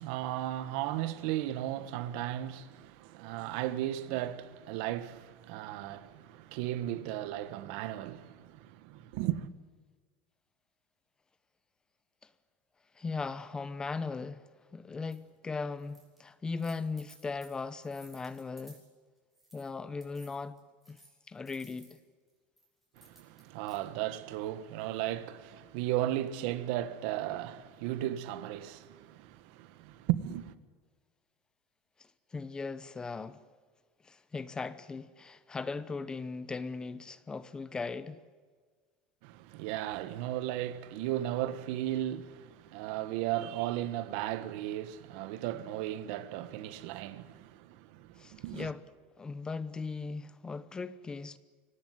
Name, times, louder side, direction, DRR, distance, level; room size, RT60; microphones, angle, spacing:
voice 1, 0.0-9.5 23.0-30.5 39.2-48.7, right 13 dB, 70° right, 1.5 m, -35 dB
voice 2, 13.0-18.8 19.5-20.6 20.9-21.0 21.3-22.0 32.3-33.4 34.0-38.2 48.2-48.8 49.2-51.4, left 4 dB, 15° left, 0.8 m, -38 dB
sound 1, 15.1-15.2 15.8-16.2 16.5-18.9 19.3-19.7 20.0-22.0 22.6-23.8, right 1 dB, 5° right, 6.8 m, -59 dB
24.5 x 18.0 x 9.4 m
cardioid pair, 155°, 5 cm